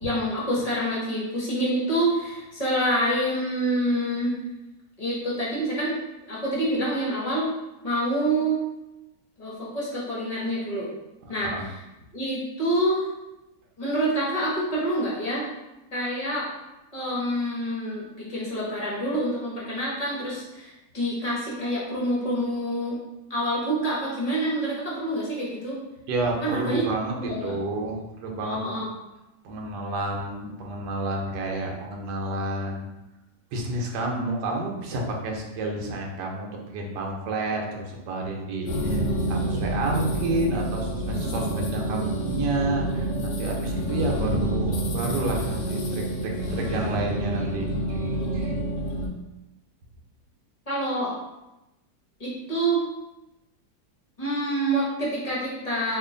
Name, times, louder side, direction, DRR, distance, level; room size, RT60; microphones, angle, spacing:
voice 1, 0.0-4.4 5.0-6.0 6.3-7.5 7.8-8.6 9.4-10.9 11.3-11.5 12.1-13.1 13.8-15.5 15.9-16.5 16.9-23.0 23.3-25.8 26.4-26.8 27.2-27.5 28.4-28.9 50.7-51.1 52.2-52.8 54.2-56.0, right 1 dB, 30° left, -7 dB, 0.7 m, -27 dB
voice 2, 11.2-11.7 26.1-28.8 29.4-32.9 33.5-48.6, right 2 dB, 85° right, 0 dB, 1.3 m, -30 dB
sound 1, 38.7-49.1, right 1 dB, 70° left, 1.0 m, -28 dB
2.9 x 2.4 x 3.7 m, 0.98 s
omnidirectional pair, 1.8 m